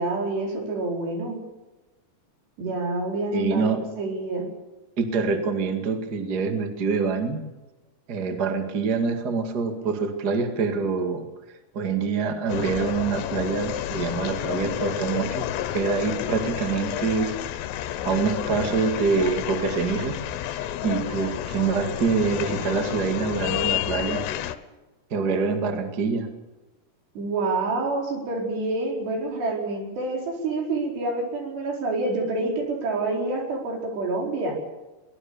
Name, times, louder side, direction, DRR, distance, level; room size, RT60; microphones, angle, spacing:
voice 1, 0.0-1.4 2.6-3.7 4.0-4.4 27.2-34.5, right 2 dB, 75° right, 0 dB, 6.6 m, -27 dB
voice 2, 3.3-3.8 5.0-7.4 8.1-11.2 11.7-15.5 15.7-17.3 18.0-20.1 20.5-24.2 25.1-26.3, right 5 dB, 35° right, 6 dB, 1.6 m, -25 dB
sound 1, 12.5-24.6, left 12 dB, 85° left, 3.1 m, -30 dB
23.0 x 18.5 x 7.1 m, 1.1 s
omnidirectional pair, 4.9 m